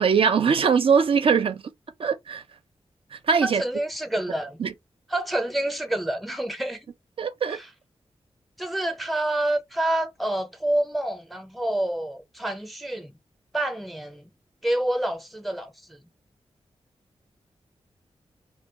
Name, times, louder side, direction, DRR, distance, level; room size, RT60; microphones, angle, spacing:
voice 1, 0.0-1.6 2.0-2.4 3.1-3.6 4.6-4.7 7.2-7.6, right 6 dB, 60° right, 0.4 m, -21 dB
voice 2, 3.4-4.6 5.1-6.8 7.5-7.7 8.6-13.1 13.5-14.3 14.6-16.0, right 1 dB, ahead, 0.5 m, -28 dB
2.2 x 2.2 x 3.6 m
wide cardioid pair, 125°, 11 cm